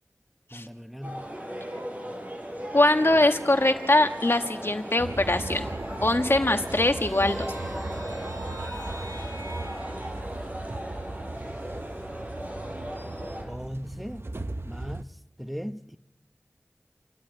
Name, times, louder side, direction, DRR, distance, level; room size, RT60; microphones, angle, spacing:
voice 1, 0.5-1.3 13.4-14.3 14.6-16.0, equal, ahead, 1.0 m, -38 dB
sound 1, 1.0-13.4, equal, 30° right, 7.9 m, -37 dB
voice 2, 2.7-5.7 6.0-7.5, left 2 dB, 50° left, 1.7 m, -22 dB
sound 2, 3.4-10.1, equal, 85° right, 5.5 m, -50 dB
sound 3, 5.0-15.0, right 2 dB, 50° right, 0.8 m, -38 dB
29.0 x 12.5 x 9.0 m
wide cardioid pair, 45°, 5 cm